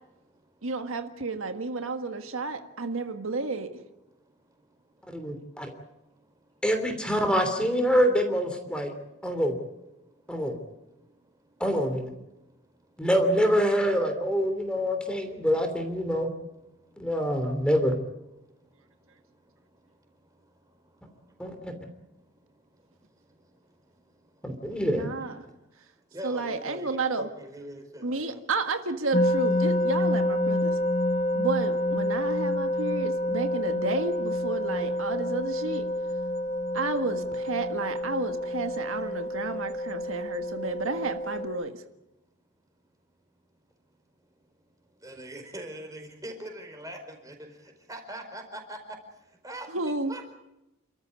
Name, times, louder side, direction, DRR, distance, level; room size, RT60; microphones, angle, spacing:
voice 1, 0.6-3.7 24.8-25.4 26.2-27.3 28.0-30.8 31.3-35.9 36.7-41.7 49.7-50.2, right 3 dB, 75° right, 6 dB, 1.6 m, -31 dB
voice 2, 5.1-5.7 6.6-8.9 9.2-9.6 10.3-10.6 11.6-12.1 13.0-16.3 17.0-17.9 21.4-21.7 24.4-25.1, equal, 5° left, 6 dB, 3.1 m, -25 dB
voice 3, 26.1-28.4 29.9-30.0 39.0-39.1 45.0-47.3 47.9-48.8 49.4-50.3, right 1 dB, 15° right, 4 dB, 4.7 m, -41 dB
sound 1, 29.1-41.5, left 1 dB, 35° left, 1.4 m, -28 dB
29.5 x 13.5 x 9.5 m, 0.94 s
head